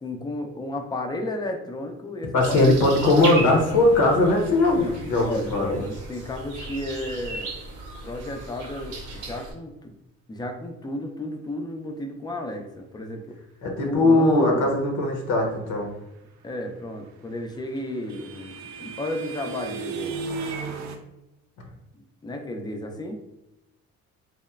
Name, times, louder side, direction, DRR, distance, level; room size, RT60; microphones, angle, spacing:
voice 1, 0.0-2.8 4.7-7.5 8.0-9.9 10.3-13.4 13.8-14.8 16.4-20.2 21.9-23.2, left 1 dB, 15° left, 5 dB, 0.3 m, -33 dB
voice 2, 2.3-5.8 13.6-15.9, left 2 dB, 80° left, 0 dB, 0.6 m, -20 dB
sound 1, 2.4-9.5, right 2 dB, 85° right, 0.8 m, -36 dB
sound 2, 17.1-21.0, right 4 dB, 65° right, 0.5 m, -35 dB
2.9 x 2.0 x 2.3 m, 0.91 s
cardioid pair, 90°, 30 cm